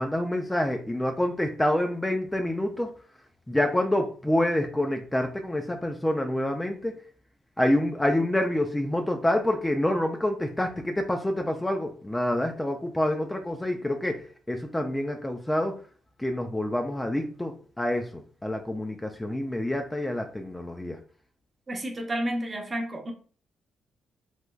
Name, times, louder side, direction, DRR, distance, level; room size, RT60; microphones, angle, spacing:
voice 1, 0.0-2.9 3.5-6.9 7.6-15.7 16.2-21.0, left 1 dB, 10° left, 0.4 m, -27 dB
voice 2, 21.7-23.1, right 1 dB, 30° right, 0.7 m, -31 dB
3.3 x 2.9 x 2.2 m
cardioid pair, 90°, 0 cm